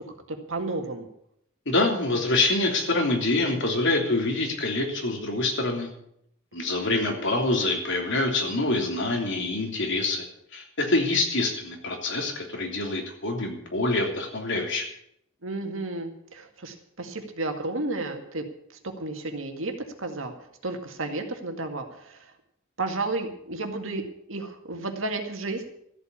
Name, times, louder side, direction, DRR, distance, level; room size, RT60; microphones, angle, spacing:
voice 1, 0.5-1.1 15.4-18.5 18.8-19.7 20.0-20.3 20.6-22.3 22.8-25.6, right 2 dB, 70° right, 5 dB, 2.1 m, -32 dB
voice 2, 1.6-5.9 6.5-10.2 10.5-14.8, left 2 dB, 65° left, 2 dB, 3.2 m, -26 dB
14.0 x 8.3 x 8.6 m, 0.72 s
head